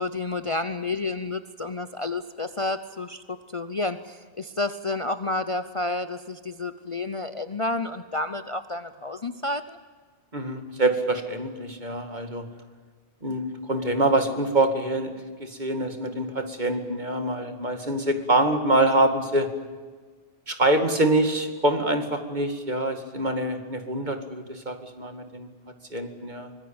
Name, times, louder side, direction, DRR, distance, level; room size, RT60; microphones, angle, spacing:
voice 1, 0.0-9.8, left 2 dB, 30° left, 10 dB, 0.8 m, -30 dB
voice 2, 10.3-12.5 13.2-15.1 15.4-19.5 20.5-25.5 25.9-26.5, right 2 dB, 40° right, 6 dB, 2.4 m, -25 dB
25.0 x 20.5 x 8.8 m, 1.5 s
omnidirectional pair, 1.2 m